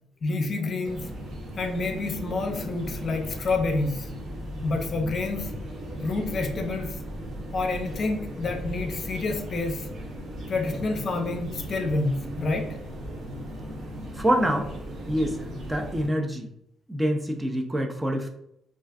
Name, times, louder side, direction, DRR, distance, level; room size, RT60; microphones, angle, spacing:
voice 1, 0.2-1.1 1.6-4.1 4.6-5.5 6.0-7.0 7.5-9.9 10.5-12.7 15.2-15.3, left 3 dB, 50° left, 4 dB, 0.4 m, -28 dB
sound 1, 0.8-16.1, equal, 60° right, 0.7 m, -37 dB
voice 2, 14.2-14.7 15.1-16.5 16.9-18.3, equal, 15° right, 2 dB, 0.4 m, -26 dB
2.4 x 2.3 x 2.3 m, 0.75 s
cardioid pair, 90°, 0 cm